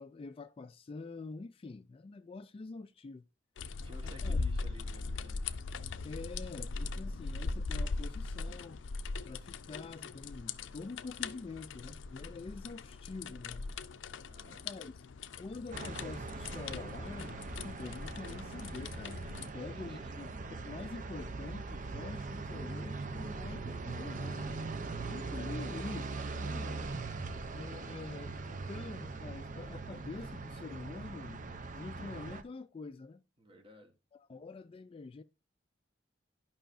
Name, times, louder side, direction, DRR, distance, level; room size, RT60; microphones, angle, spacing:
voice 1, 0.0-3.3 4.0-4.4 6.0-8.8 9.3-13.7 14.5-15.0 15.4-19.2 19.5-24.6 25.1-26.9 27.5-31.5 31.7-33.2 34.1-35.2, left 3 dB, 30° left, 0.3 m, -46 dB
sound 1, 3.6-19.5, left 3 dB, 90° left, 0.5 m, -40 dB
voice 2, 3.8-5.5 14.3-14.7 19.7-20.1 33.4-33.9, equal, 30° right, 1.2 m, -55 dB
sound 2, 15.7-32.4, right 3 dB, 45° right, 0.6 m, -41 dB
11.5 x 5.6 x 2.5 m
head